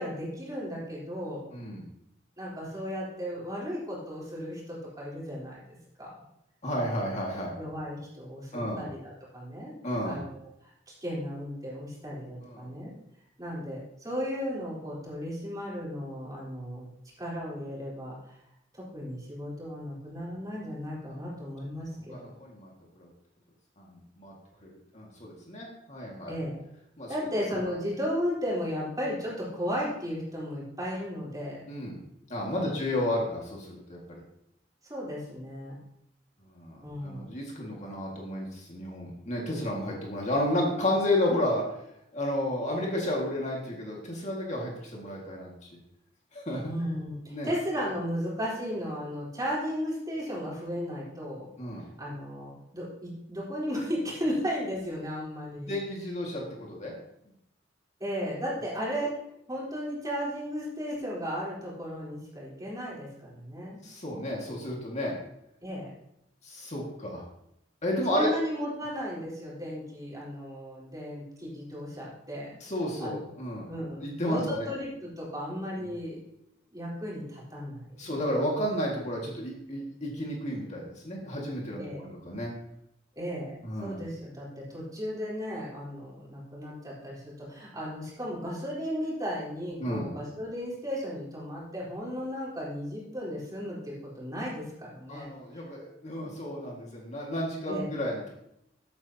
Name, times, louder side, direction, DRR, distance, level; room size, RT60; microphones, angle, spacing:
voice 1, 0.0-1.4 2.4-5.6 6.0-6.2 6.8-7.1 7.6-9.7 10.0-12.9 13.4-16.9 17.2-18.4 18.7-22.3 26.3-26.6 27.1-31.6 32.6-32.8 34.9-35.8 36.8-37.3 46.6-51.5 52.0-55.7 58.0-59.1 59.5-63.8 65.6-65.9 68.1-72.6 73.0-73.3 73.7-76.2 76.7-78.1 81.8-82.2 83.2-95.3 97.7-97.9, equal, 20° right, -6 dB, 3.8 m, -35 dB
voice 2, 1.5-1.8 6.6-7.5 8.5-8.8 9.8-10.2 12.4-12.7 22.1-23.1 23.8-24.3 24.6-26.3 27.0-27.1 31.7-32.0 32.3-34.2 36.5-41.6 42.1-45.7 46.3-46.7 47.3-47.5 51.6-51.8 55.6-56.9 63.8-65.1 66.4-67.2 67.8-68.3 72.6-73.7 74.0-74.7 75.8-75.9 78.0-82.5 83.6-83.9 89.8-90.1 95.1-98.3, left 1 dB, 40° left, -2 dB, 1.9 m, -32 dB
13.5 x 8.5 x 2.9 m, 0.78 s
head